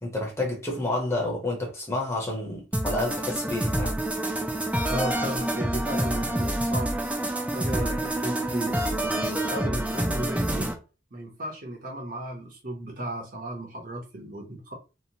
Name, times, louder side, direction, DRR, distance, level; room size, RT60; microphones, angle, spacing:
voice 1, 0.0-4.0, left 2 dB, 15° left, 0.7 m, -29 dB
sound 1, 2.7-10.7, right 1 dB, 5° right, 0.3 m, -27 dB
voice 2, 4.9-10.7 11.1-14.7, right 1 dB, 45° right, 0.7 m, -35 dB
2.9 x 2.1 x 2.7 m
head